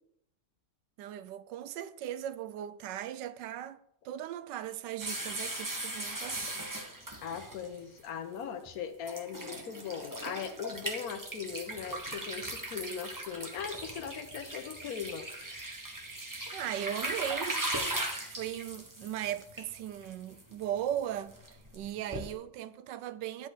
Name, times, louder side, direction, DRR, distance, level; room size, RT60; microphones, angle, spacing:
voice 1, 1.0-6.6 16.5-17.6 18.3-23.5, right 11 dB, 80° right, 1.2 m, -38 dB
sound 1, 5.0-8.0 8.7-8.8 9.0-22.3, right 1 dB, 15° right, 1.0 m, -39 dB
voice 2, 7.2-15.3, left 7 dB, 60° left, 1.3 m, -39 dB
10.5 x 4.3 x 6.5 m
omnidirectional pair, 1.9 m